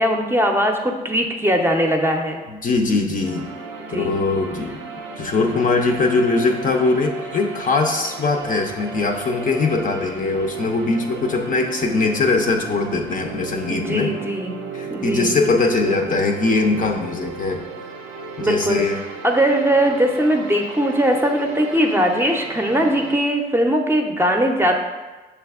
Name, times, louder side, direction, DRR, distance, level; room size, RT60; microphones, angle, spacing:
voice 1, 0.0-2.4 3.9-4.2 13.7-14.6 14.9-15.3 15.9-16.0 18.4-18.8 19.2-24.7, equal, 10° right, 2 dB, 0.6 m, -20 dB
voice 2, 2.5-3.5 3.9-4.8 5.2-14.1 14.7-17.6 18.4-19.0, left 3 dB, 45° left, 3 dB, 0.6 m, -21 dB
sound 1, 3.2-23.2, right 4 dB, 90° right, 0.5 m, -35 dB
6.3 x 3.4 x 2.4 m, 1.2 s
hypercardioid pair, 45°, 20 cm